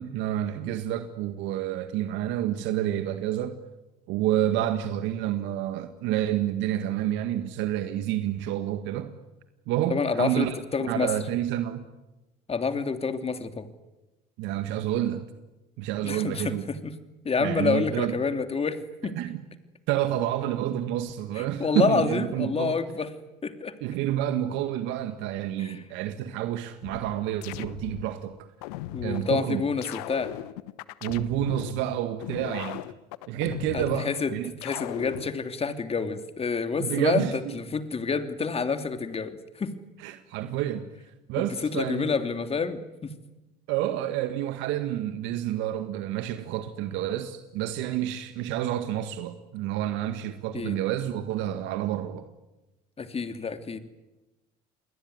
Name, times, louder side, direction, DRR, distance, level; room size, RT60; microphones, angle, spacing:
voice 1, 0.0-3.6 4.1-9.1 9.7-10.6 10.9-11.8 14.4-15.2 15.8-16.6 17.4-18.2 19.2-19.4 19.9-22.8 23.8-28.3 29.0-29.6 31.0-32.8 33.3-34.5 36.8-37.5 40.0-40.8 41.3-42.1 43.7-52.3, right 12 dB, 70° right, 1.8 m, -29 dB
voice 2, 9.9-11.1 12.5-13.7 16.0-16.9 17.2-19.2 21.4-23.1 23.4-23.8 25.6-25.8 28.9-30.3 33.7-34.3 34.6-39.8 41.4-43.1 50.5-50.8 53.0-53.8, left 5 dB, 30° left, 3.0 m, -28 dB
sound 1, 26.8-28.1 28.6-29.3 29.8-31.7 32.2-34.1 34.6-35.3, left 16 dB, 80° left, 1.1 m, -37 dB
29.0 x 21.0 x 9.6 m
hypercardioid pair, 70°, 20 cm